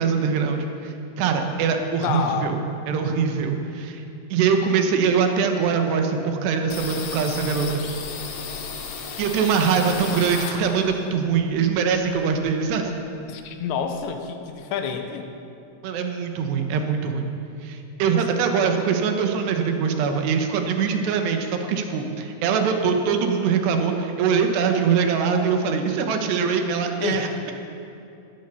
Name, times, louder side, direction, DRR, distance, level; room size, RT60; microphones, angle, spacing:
voice 1, 0.0-2.6 2.9-4.0 4.3-7.8 9.2-12.9 15.8-17.3 17.6-27.5, right 6 dB, 75° right, 5 dB, 3.2 m, -23 dB
voice 2, 2.0-2.5 13.3-15.3 27.0-27.3, left 7 dB, 85° left, 6 dB, 3.3 m, -28 dB
sound 1, 6.7-11.0 11.4-12.8 13.0-13.1 13.4-14.1, left 5 dB, 70° left, 1.7 m, -34 dB
19.5 x 10.0 x 7.0 m, 2.7 s
omnidirectional pair, 5.0 m